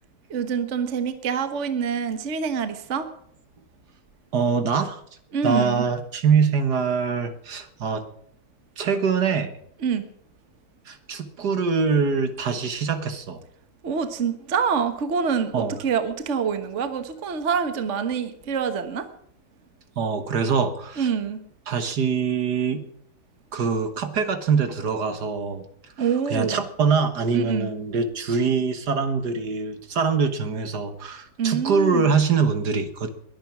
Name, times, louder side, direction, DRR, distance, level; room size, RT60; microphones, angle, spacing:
voice 1, 0.3-3.1 5.3-5.9 9.8-10.0 13.8-19.1 21.0-21.4 26.0-26.6 27.3-27.7 31.4-32.1, right 6 dB, 40° right, 9 dB, 1.4 m, -26 dB
voice 2, 4.3-5.0 5.4-8.0 8.8-9.5 10.9-13.4 15.5-15.8 20.0-21.1 21.7-22.8 23.5-25.6 26.3-33.1, right 5 dB, 60° right, 9 dB, 1.9 m, -24 dB
21.5 x 9.6 x 6.0 m, 0.69 s
omnidirectional pair, 2.1 m